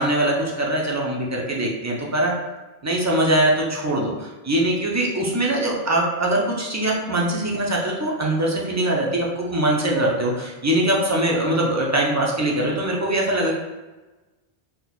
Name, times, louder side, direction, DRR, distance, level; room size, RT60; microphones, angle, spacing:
voice 1, 0.0-2.4 2.8-13.6, right 1 dB, 25° right, -2 dB, 0.3 m, -22 dB
2.8 x 2.2 x 4.0 m, 1.2 s
omnidirectional pair, 1.1 m